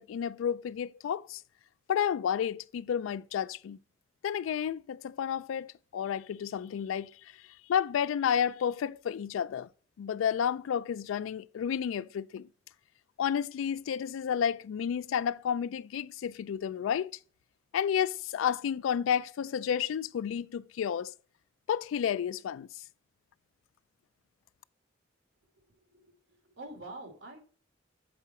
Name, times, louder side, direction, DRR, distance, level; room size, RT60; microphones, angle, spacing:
voice 1, 0.0-1.4 1.9-3.8 4.2-7.1 7.7-9.7 10.0-12.5 13.2-17.1 17.7-21.1 21.7-22.7, left 8 dB, 85° left, 0.3 m, -31 dB
voice 2, 25.6-27.4, right 2 dB, 70° right, 2.3 m, -47 dB
7.0 x 4.6 x 4.1 m
head